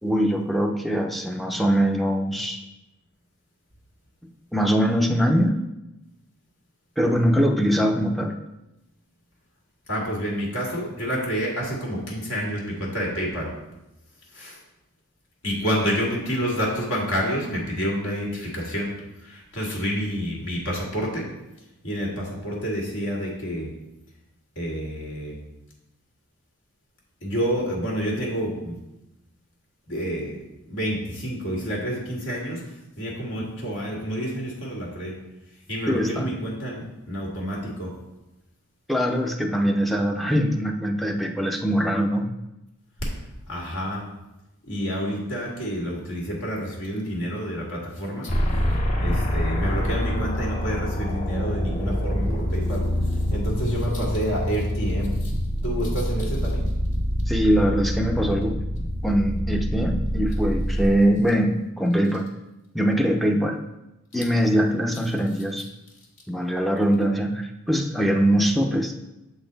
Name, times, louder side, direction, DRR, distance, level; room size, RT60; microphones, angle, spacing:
voice 1, 0.0-2.6 4.5-5.6 7.0-8.3 35.9-36.3 38.9-42.3 57.3-58.6 59.0-62.3 62.7-63.6 64.1-65.6 66.3-68.9, equal, ahead, 2 dB, 0.5 m, -22 dB
voice 2, 9.9-13.5 14.3-14.6 15.4-18.9 19.2-21.3 21.8-23.7 24.6-25.3 27.2-28.8 29.9-30.4 30.7-35.2 35.7-37.9 43.5-44.0 44.6-48.3 49.0-55.3 55.6-56.6, equal, 70° left, -3 dB, 2.0 m, -29 dB
sound 1, 48.3-60.8, equal, 35° left, 0.8 m, -26 dB
7.4 x 4.0 x 4.0 m, 0.94 s
head